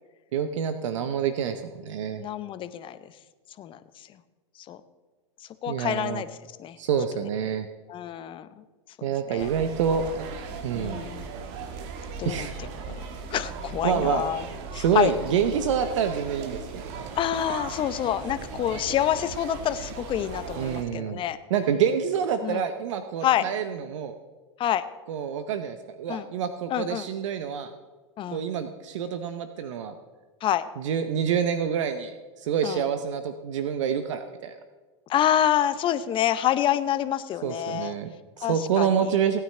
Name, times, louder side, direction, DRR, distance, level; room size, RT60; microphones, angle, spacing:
voice 1, 0.3-2.2 5.7-6.2 6.8-7.7 9.0-10.2 10.6-11.0 12.2-12.7 13.8-14.2 14.7-17.1 20.6-21.2 21.5-24.1 25.1-27.7 28.3-29.9 30.8-34.6 37.4-39.4, right 8 dB, 70° right, 9 dB, 0.8 m, -27 dB
voice 2, 2.2-3.0 3.6-3.8 4.7-4.8 5.6-6.3 6.6-6.8 7.9-8.5 9.3-9.5 10.7-11.3 12.2-12.5 13.3-14.4 14.7-15.1 17.1-21.4 22.4-22.6 23.2-23.4 24.6-24.8 26.1-26.3 26.7-27.1 28.2-28.4 30.4-30.6 32.6-32.8 35.1-37.9 38.4-39.2, left 11 dB, 30° left, 12 dB, 0.7 m, -27 dB
sound 1, 9.4-20.8, right 5 dB, 55° right, 1.5 m, -37 dB
17.5 x 9.3 x 3.3 m, 1.3 s
hypercardioid pair, 105°, 16 cm